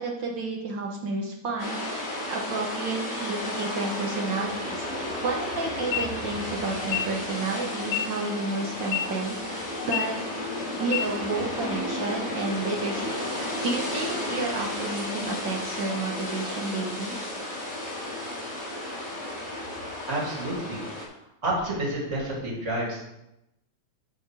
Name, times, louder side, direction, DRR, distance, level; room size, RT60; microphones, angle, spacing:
voice 1, 0.0-10.2 10.8-17.2, right 3 dB, 65° right, 0 dB, 1.1 m, -31 dB
sound 1, 1.6-21.0, left 1 dB, 5° right, 2.4 m, -33 dB
sound 2, 5.8-6.0 6.8-7.0 7.8-8.0 8.8-9.0 9.8-10.0 10.8-11.0, left 14 dB, 80° left, 2.2 m, -28 dB
voice 2, 20.1-20.8 21.4-23.0, right 1 dB, 25° right, -4 dB, 2.6 m, -29 dB
8.2 x 4.5 x 6.6 m, 0.87 s
omnidirectional pair, 3.3 m